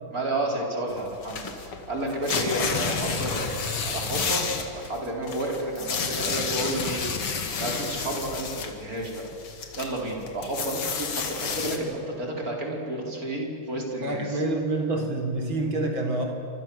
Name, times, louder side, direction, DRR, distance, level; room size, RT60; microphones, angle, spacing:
voice 1, 0.1-3.5 3.8-9.3 9.8-14.4, right 1 dB, 40° right, 0 dB, 5.0 m, -31 dB
sound 1, 0.9-8.7 9.0-11.8, left 5 dB, 85° left, 3.2 m, -30 dB
voice 2, 14.0-16.2, right 2 dB, 65° right, 3 dB, 4.6 m, -27 dB
29.0 x 26.5 x 7.3 m, 2.6 s
omnidirectional pair, 2.4 m